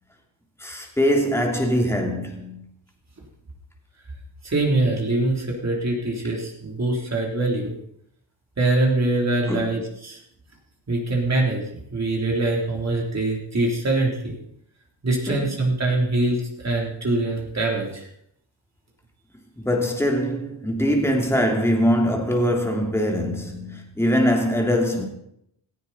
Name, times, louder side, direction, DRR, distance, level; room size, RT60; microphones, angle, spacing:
voice 1, 0.6-2.6 9.5-9.7 15.3-15.5 19.6-25.1, equal, 5° left, 2.7 m, -22 dB
voice 2, 4.4-7.7 8.6-10.2 10.9-11.6 11.9-14.3 15.0-18.1, right 2 dB, 35° right, 3.6 m, -23 dB
17.5 x 15.0 x 4.3 m
wide cardioid pair, 130°, 45 cm